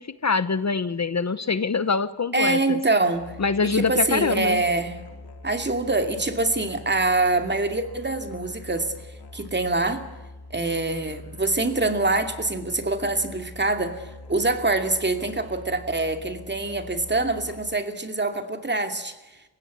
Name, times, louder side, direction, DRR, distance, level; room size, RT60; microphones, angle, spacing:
voice 1, 0.0-2.8 3.4-4.6, left 4 dB, 45° left, 14 dB, 1.0 m, -24 dB
voice 2, 2.3-3.3 3.6-5.0 5.4-8.9 9.3-10.1 10.5-19.2, right 2 dB, 30° right, 7 dB, 2.5 m, -25 dB
Musical instrument, 3.1-17.9, left 2 dB, 80° left, 3.1 m, -44 dB
29.5 x 16.5 x 8.4 m, 1.1 s
wide cardioid pair, 130°, 38 cm